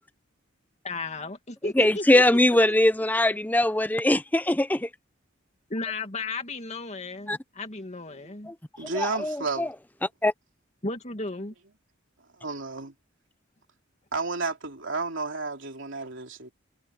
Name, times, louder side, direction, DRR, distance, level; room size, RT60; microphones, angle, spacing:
voice 1, 0.8-2.6 3.0-3.4 5.7-8.5 10.8-11.5, left 3 dB, 35° left, 2.4 m, -35 dB
voice 2, 1.8-4.9 7.3-7.4 8.5-8.6 8.8-9.7 10.2-10.3, left 1 dB, 10° left, 0.8 m, -22 dB
voice 3, 8.8-9.7 12.4-12.9 14.1-16.5, right 3 dB, 65° right, 3.5 m, -32 dB
head